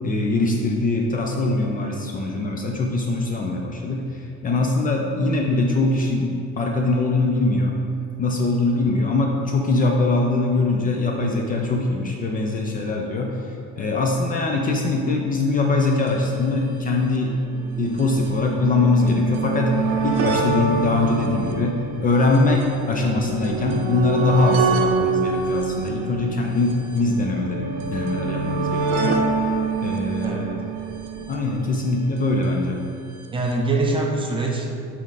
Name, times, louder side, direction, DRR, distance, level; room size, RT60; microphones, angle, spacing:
voice 1, 0.0-7.8 8.2-17.3 17.8-29.3 29.8-30.6 31.2-32.8, left 2 dB, 30° left, 1 dB, 0.4 m, -22 dB
sound 1, 15.8-15.9 16.1-16.2 17.0-32.3 33.2-33.3 33.5-33.6, right 4 dB, 80° right, 0.7 m, -26 dB
voice 2, 30.2-30.7 33.3-34.8, right 2 dB, 15° right, -1 dB, 0.6 m, -24 dB
7.1 x 4.2 x 4.0 m, 2.5 s
cardioid pair, 160°, 31 cm